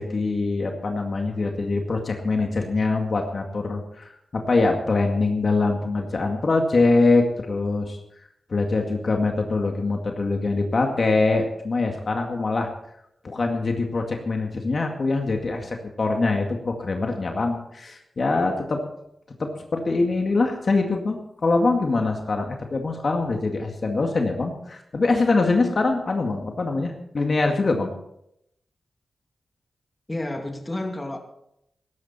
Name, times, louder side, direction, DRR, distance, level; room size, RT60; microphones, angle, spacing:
voice 1, 0.0-8.0 8.5-12.7 13.2-18.8 19.4-27.9, left 3 dB, 55° left, 2 dB, 2.1 m, -23 dB
voice 2, 30.1-31.2, left 1 dB, 25° left, 3 dB, 2.6 m, -30 dB
17.0 x 14.0 x 4.3 m, 0.77 s
wide cardioid pair, 90°, 0 cm